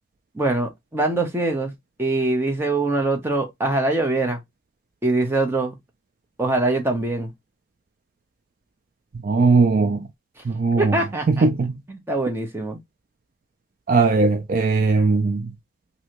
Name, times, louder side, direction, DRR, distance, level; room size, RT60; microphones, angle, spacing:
voice 1, 0.3-4.4 5.0-5.7 6.4-7.3 10.4-10.5 10.8-11.5 11.9-12.8, right 2 dB, 10° right, 0.8 m, -23 dB
voice 2, 9.2-10.1 10.4-11.0 11.3-11.8 13.9-15.5, right 4 dB, 45° right, 0.4 m, -19 dB
3.1 x 2.7 x 2.9 m
head